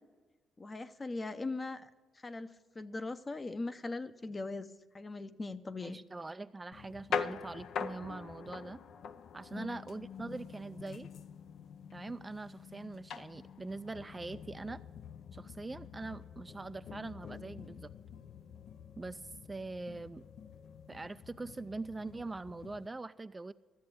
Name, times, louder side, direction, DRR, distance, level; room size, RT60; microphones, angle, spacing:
voice 1, 0.6-1.9 2.2-4.7 4.9-6.0 9.6-9.8, left 3 dB, 25° left, 12 dB, 0.7 m, -40 dB
voice 2, 5.8-8.8 9.3-11.1 11.9-14.8 15.3-17.9 19.0-20.2 20.9-23.5, right 3 dB, 20° right, 12 dB, 0.3 m, -43 dB
sound 1, 6.7-22.9, left 7 dB, 70° left, 0.5 m, -45 dB
13.5 x 7.7 x 8.3 m, 1.3 s
cardioid pair, 90°, 0 cm